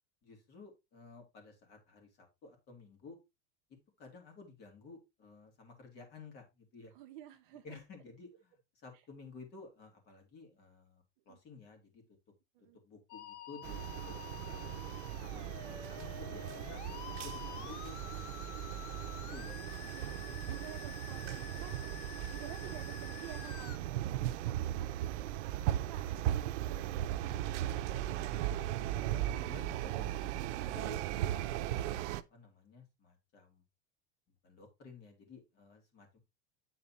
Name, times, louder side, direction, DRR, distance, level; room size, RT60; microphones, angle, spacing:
voice 1, 0.2-3.2 3.7-6.9 7.6-12.0 12.7-14.8 15.2-19.8 20.3-20.4 28.9-33.6 34.4-36.2, left 4 dB, 30° left, 2.4 m, -54 dB
voice 2, 6.9-7.8 11.3-11.4 12.5-12.8 19.9-28.2, right 11 dB, 50° right, 1.0 m, -53 dB
Musical instrument, 13.1-23.8, left 10 dB, 90° left, 1.0 m, -49 dB
sound 1, 13.6-32.2, right 13 dB, 80° right, 0.7 m, -37 dB
9.0 x 3.9 x 4.1 m
supercardioid pair, 180°, 34 cm